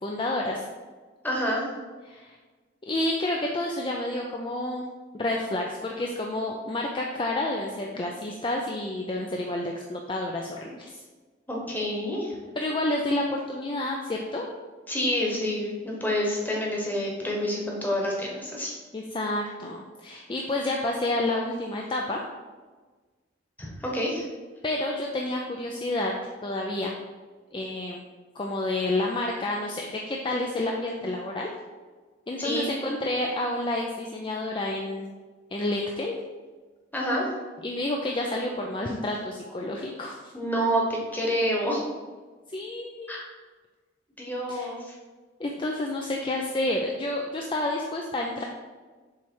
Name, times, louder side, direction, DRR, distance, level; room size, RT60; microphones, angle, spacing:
voice 1, 0.0-0.7 2.1-2.4 2.9-4.9 5.1-11.0 12.6-14.5 18.9-22.2 24.6-26.1 26.4-26.9 27.5-28.0 28.4-31.5 32.3-35.1 35.5-36.2 37.6-40.3 42.5-43.1 44.5-44.7 45.4-48.4, left 1 dB, 25° left, 0 dB, 0.4 m, -29 dB
voice 2, 1.2-1.7 11.5-12.4 14.9-18.7 23.6-24.3 32.4-32.7 36.9-37.4 40.3-41.9 43.1-43.2 44.2-45.0, equal, 10° left, -3 dB, 1.1 m, -28 dB
7.1 x 3.2 x 4.6 m, 1.4 s
head